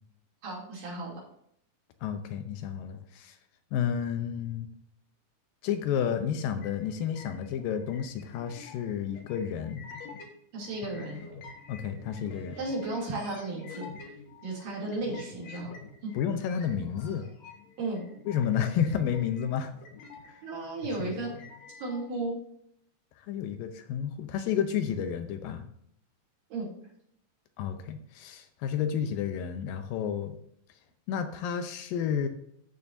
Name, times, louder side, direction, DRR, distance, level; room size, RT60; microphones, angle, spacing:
voice 1, 0.4-1.2 10.5-11.2 12.6-13.9 14.4-15.7 16.0-16.1 17.8-18.0 20.4-21.3 21.8-22.4 26.5-26.7, right 2 dB, 65° right, -4 dB, 4.4 m, -34 dB
voice 2, 2.0-3.4 3.7-4.7 5.6-9.8 11.7-12.6 16.1-17.3 18.3-19.7 21.0-21.2 23.3-25.6 27.6-30.4 31.1-32.3, left 8 dB, 75° left, 8 dB, 2.3 m, -31 dB
sound 1, 6.6-10.3 10.6-22.1, left 4 dB, 55° left, 2.3 m, -49 dB
13.5 x 6.8 x 2.6 m, 0.71 s
omnidirectional pair, 4.2 m